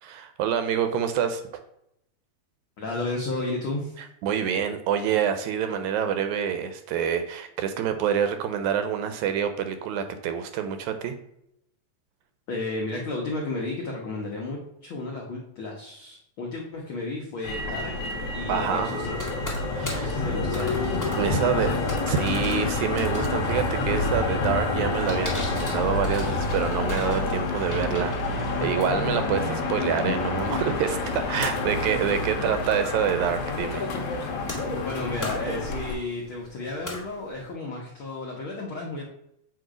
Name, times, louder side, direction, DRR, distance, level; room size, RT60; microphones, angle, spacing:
voice 1, 0.0-1.4 4.2-11.2 18.5-19.0 19.7-20.1 21.2-21.7 22.1-33.9, right 8 dB, 80° right, 9 dB, 1.9 m, -27 dB
voice 2, 2.8-4.0 12.5-19.1 19.9-20.8 21.3-21.7 34.8-39.0, left 2 dB, 85° left, -1 dB, 1.1 m, -33 dB
Motor vehicle (road), 17.4-35.9, left 3 dB, 65° left, 1.7 m, -28 dB
sound 1, 19.1-37.5, left 2 dB, 20° left, 0.4 m, -40 dB
7.6 x 2.7 x 4.9 m, 0.77 s
omnidirectional pair, 3.6 m